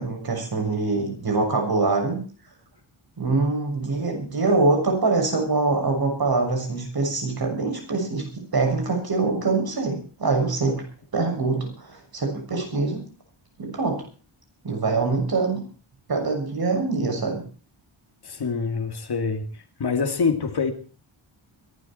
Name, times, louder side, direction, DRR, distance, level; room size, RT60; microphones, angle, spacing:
voice 1, 0.0-2.2 3.2-8.3 8.5-10.8 11.1-13.1 13.6-14.0 14.6-15.6 16.1-17.4, right 3 dB, 45° right, 3 dB, 6.9 m, -24 dB
voice 2, 18.2-19.4 19.8-20.7, left 5 dB, 50° left, 6 dB, 2.6 m, -25 dB
22.0 x 12.5 x 4.4 m, 0.40 s
wide cardioid pair, 170°, 49 cm